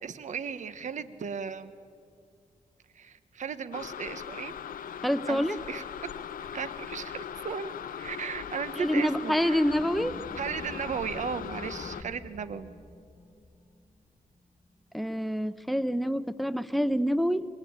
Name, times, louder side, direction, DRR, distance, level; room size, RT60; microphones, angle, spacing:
voice 1, 0.0-1.7 2.9-4.5 5.3-5.8 6.4-9.6 10.3-12.7, right 6 dB, 60° right, 12 dB, 1.1 m, -36 dB
sound 1, 3.7-12.0, left 8 dB, 85° left, 0.7 m, -39 dB
voice 2, 5.0-5.6 8.8-10.1 14.9-17.5, equal, ahead, 14 dB, 0.7 m, -27 dB
sound 2, 9.6-14.8, left 2 dB, 25° left, 1.4 m, -47 dB
26.0 x 23.5 x 8.8 m, 2.4 s
wide cardioid pair, 160°, 14 cm